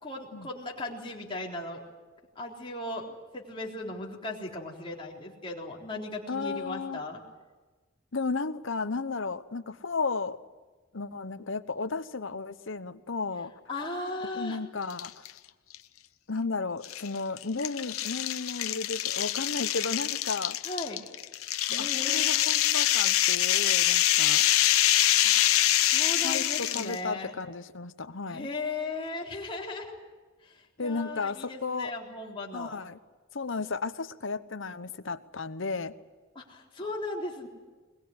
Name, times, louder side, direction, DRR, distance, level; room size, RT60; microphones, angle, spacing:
voice 1, 0.0-1.8 2.4-7.2 13.7-14.6 20.6-21.0 21.7-22.4 25.2-27.4 28.3-29.9 30.4-32.8 36.4-37.5, left 2 dB, 25° left, -2 dB, 3.8 m, -37 dB
voice 2, 6.3-7.0 8.1-10.4 10.9-13.5 14.3-15.2 16.3-20.6 21.7-24.4 26.2-28.5 30.8-31.9 32.5-33.0 33.3-35.9, left 4 dB, 60° left, 12 dB, 1.0 m, -34 dB
sound 1, 14.9-15.3 15.7-15.8 16.8-27.0, left 13 dB, 85° left, 0.9 m, -25 dB
22.0 x 21.5 x 9.7 m, 1.3 s
head